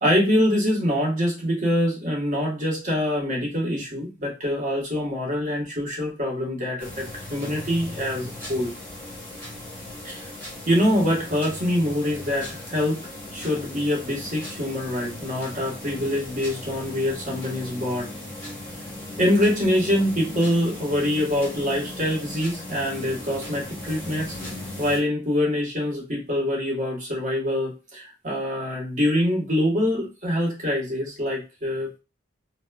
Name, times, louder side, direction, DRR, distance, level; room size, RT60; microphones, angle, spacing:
voice 1, 0.0-7.0 7.3-8.7 10.0-10.3 10.7-13.0 13.3-18.1 19.2-24.3 24.8-32.0, left 1 dB, 35° right, -3 dB, 1.3 m, -24 dB
sound 1, 6.8-25.0, left 1 dB, 10° left, 0.9 m, -38 dB
4.1 x 2.1 x 2.3 m, 0.29 s
head